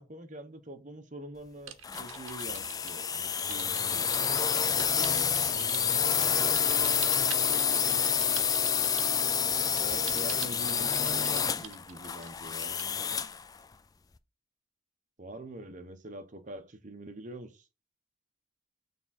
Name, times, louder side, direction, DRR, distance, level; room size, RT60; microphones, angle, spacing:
voice 1, 0.0-3.1 3.5-4.1 7.9-8.1 9.8-12.8 15.2-17.7, right 1 dB, 40° right, 0.9 m, -45 dB
sound 1, 1.7-12.9, right 10 dB, 80° right, 0.8 m, -44 dB
sound 2, 1.8-13.4, left 7 dB, 20° left, 0.3 m, -28 dB
voice 2, 5.4-6.8 7.1-9.3, equal, 75° left, 1.8 m, -52 dB
6.9 x 3.6 x 4.2 m
head